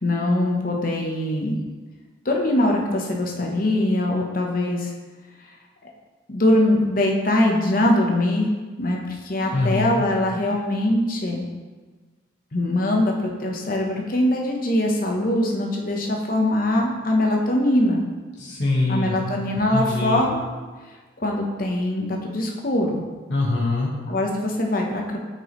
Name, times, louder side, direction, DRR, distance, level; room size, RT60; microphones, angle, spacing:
voice 1, 0.0-1.6 2.2-4.9 6.3-8.5 8.8-11.4 12.5-18.0 18.9-20.5 21.2-23.0 24.1-25.2, left 1 dB, 45° left, 0 dB, 0.8 m, -22 dB
voice 2, 9.5-10.0 18.4-19.2 19.7-20.2 23.3-23.9, left 2 dB, 65° left, -6 dB, 1.3 m, -23 dB
8.1 x 4.6 x 3.0 m, 1.3 s
head